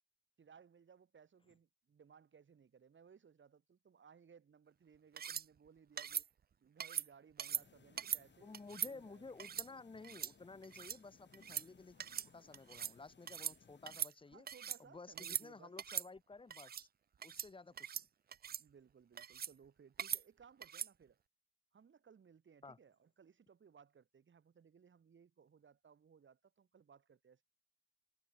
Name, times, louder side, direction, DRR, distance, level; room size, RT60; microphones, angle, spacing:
voice 1, 0.4-6.3 6.6-8.5 8.8-9.3 14.2-15.8 18.6-21.2 21.7-27.4, right 6 dB, 65° right, 6.2 m, -63 dB
sound 1, 5.2-5.5 6.0-6.3 6.8-7.1 7.4-7.6 8.0-8.2 8.5-8.9 9.4-9.7 10.0-10.3 10.6-11.0 11.3-11.7 12.0-12.3 12.5-12.9 13.3-13.6 13.9-14.8 15.2-15.5 15.8-16.1 16.5-16.8 17.2-17.5 17.8-18.0 18.3-18.6 19.2-19.5 20.0-20.2 20.6-20.9, right 8 dB, 45° right, 0.4 m, -41 dB
sound 2, 7.5-14.0, left 6 dB, 55° left, 5.1 m, -66 dB
voice 2, 8.4-12.0 12.3-14.5 14.8-16.7 17.2-17.9 22.6-22.8, left 3 dB, 25° left, 0.9 m, -54 dB
wide cardioid pair, 160°, 21 cm